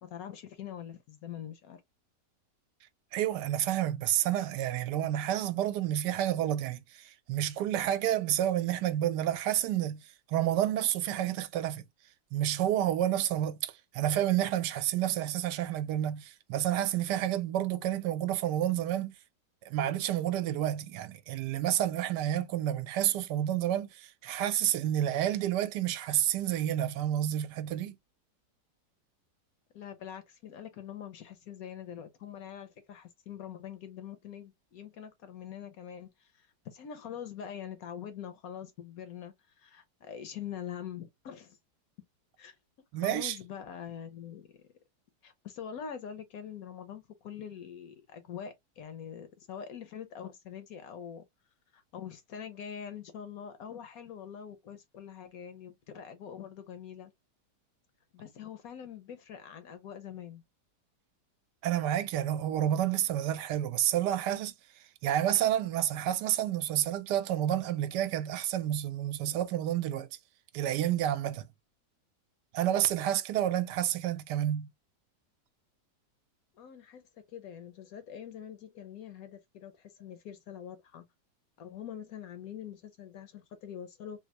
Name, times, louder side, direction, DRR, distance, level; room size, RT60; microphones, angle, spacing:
voice 1, 0.0-1.8 29.7-41.6 42.4-42.5 42.9-44.5 45.2-51.3 51.7-57.1 58.1-60.4 76.6-81.0 81.6-84.2, left 8 dB, 65° left, 1.0 m, -44 dB
voice 2, 3.1-11.8 12.3-19.1 19.6-28.0 42.9-43.4 61.6-70.1 70.5-71.5 72.5-74.7, right 12 dB, 80° right, 1.1 m, -30 dB
3.3 x 2.6 x 2.8 m
omnidirectional pair, 1.8 m